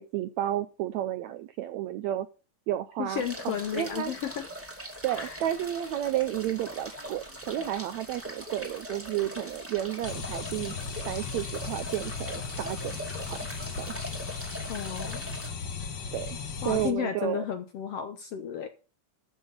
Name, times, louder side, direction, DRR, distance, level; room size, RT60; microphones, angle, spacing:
voice 1, 0.0-2.3 2.7-4.1 5.0-10.7 11.1-12.9 13.2-13.4 13.8-13.9 16.1-16.4 16.6-17.4, right 13 dB, 80° right, 12 dB, 1.6 m, -32 dB
voice 2, 3.0-4.5 5.2-5.4 14.7-15.2 16.6-18.7, left 9 dB, 65° left, 9 dB, 1.5 m, -33 dB
sound 1, 3.1-15.5, equal, 5° right, 1.6 m, -41 dB
sound 2, 10.0-16.9, left 5 dB, 50° left, 1.5 m, -36 dB
13.0 x 6.4 x 5.5 m, 0.35 s
omnidirectional pair, 3.8 m